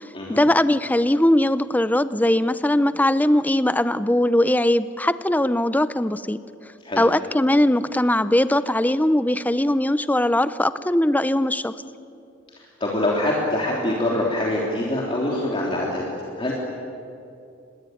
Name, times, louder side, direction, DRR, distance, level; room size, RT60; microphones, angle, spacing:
voice 1, 0.3-6.4 7.0-11.7, left 1 dB, 10° left, 14 dB, 0.6 m, -20 dB
voice 2, 12.6-16.0 16.4-16.5, left 1 dB, 30° left, -3 dB, 3.1 m, -24 dB
27.5 x 20.5 x 9.3 m, 2.6 s
head